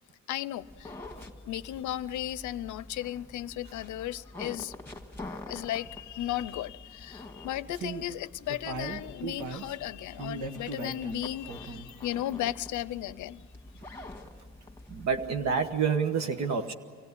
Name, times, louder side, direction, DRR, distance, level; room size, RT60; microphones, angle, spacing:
voice 1, 0.3-1.0 1.4-4.7 5.3-13.5, left 13 dB, 75° left, 0.6 m, -35 dB
sound 1, 0.6-15.9, left 2 dB, 10° left, 1.9 m, -47 dB
sound 2, 7.7-8.0 8.5-9.7 10.2-11.2 11.5-12.0 12.3-12.4 12.7-12.8, right 4 dB, 80° right, 1.6 m, -38 dB
voice 2, 14.9-16.7, right 6 dB, 60° right, 1.3 m, -28 dB
25.0 x 16.5 x 9.7 m
cardioid pair, 90°, 30 cm